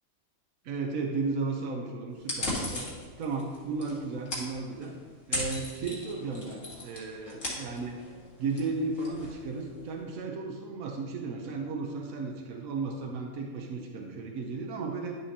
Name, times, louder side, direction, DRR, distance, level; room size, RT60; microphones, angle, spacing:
voice 1, 0.6-2.9 3.2-5.0 5.3-8.0 8.4-15.1, right 3 dB, 75° right, 1 dB, 1.2 m, -34 dB
sound 1, 2.2-9.9, left 1 dB, 60° left, 2.2 m, -38 dB
10.5 x 6.8 x 2.8 m, 1.5 s
omnidirectional pair, 1.5 m